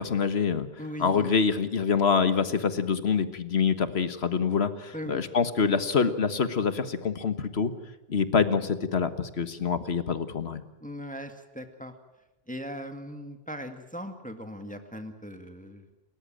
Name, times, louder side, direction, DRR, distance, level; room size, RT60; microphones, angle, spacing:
voice 1, 0.0-0.7 1.0-7.7 8.1-10.6, left 5 dB, 90° left, 11 dB, 1.7 m, -26 dB
voice 2, 0.8-1.3 4.9-5.2 10.8-11.9 12.5-15.8, equal, 10° left, 7 dB, 1.8 m, -39 dB
29.5 x 14.0 x 9.0 m, 0.98 s
omnidirectional pair, 1.0 m